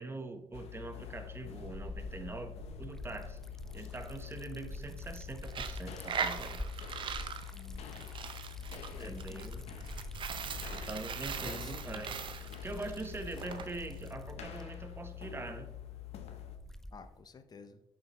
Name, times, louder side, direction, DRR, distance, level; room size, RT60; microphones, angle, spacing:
voice 1, 0.0-3.4 3.7-6.6 9.0-9.6 10.7-15.7, right 2 dB, 20° right, 7 dB, 0.9 m, -43 dB
sound 1, 0.5-16.6, left 11 dB, 75° left, 0.7 m, -46 dB
Liquid, 1.1-17.2, equal, 5° left, 0.3 m, -48 dB
Coin (dropping), 5.4-13.7, right 6 dB, 50° right, 0.6 m, -40 dB
voice 2, 7.5-8.1 8.7-9.5 11.4-12.1 16.9-17.8, left 5 dB, 40° left, 10 dB, 0.7 m, -51 dB
6.4 x 5.7 x 3.0 m, 0.91 s
cardioid pair, 90°, 11 cm